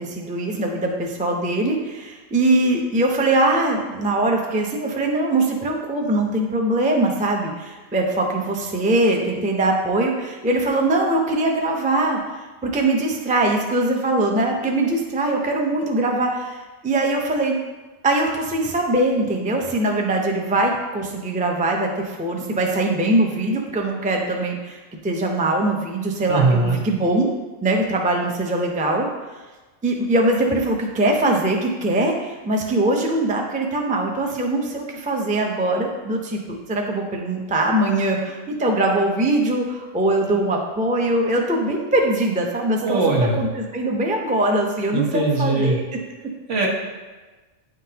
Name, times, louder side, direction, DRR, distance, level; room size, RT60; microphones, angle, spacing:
voice 1, 0.0-17.6 18.0-27.3 27.6-29.1 29.8-45.8, right 2 dB, 10° right, 1 dB, 0.3 m, -22 dB
voice 2, 26.3-26.8 42.8-43.4 44.9-45.8 46.5-46.7, right 3 dB, 75° right, -2 dB, 1.4 m, -20 dB
9.6 x 3.8 x 2.8 m, 1.2 s
omnidirectional pair, 1.2 m